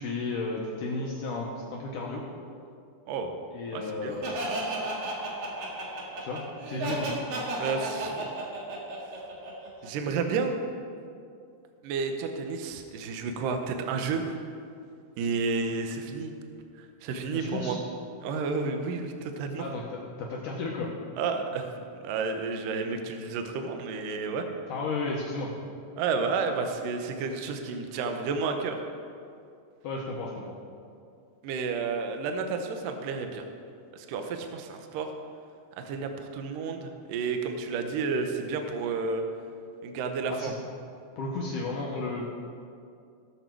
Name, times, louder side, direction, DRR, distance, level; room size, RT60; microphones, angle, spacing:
voice 1, 0.0-2.3 3.5-4.4 6.2-7.1 17.3-17.8 19.6-20.9 24.7-25.5 29.8-30.5 40.3-40.5 41.2-42.2, left 3 dB, 80° left, -2 dB, 1.8 m, -33 dB
voice 2, 3.7-4.2 7.6-8.3 9.8-10.6 11.8-14.2 15.2-16.3 16.8-17.8 18.2-19.7 21.2-21.7 22.0-24.5 26.0-28.8 31.4-33.4 33.9-35.1 35.8-39.2 39.8-40.5, right 4 dB, 85° right, 5 dB, 1.9 m, -31 dB
Laughter, 4.2-9.9, right 2 dB, 60° right, 3.1 m, -33 dB
17.5 x 6.8 x 4.6 m, 2.4 s
omnidirectional pair, 5.1 m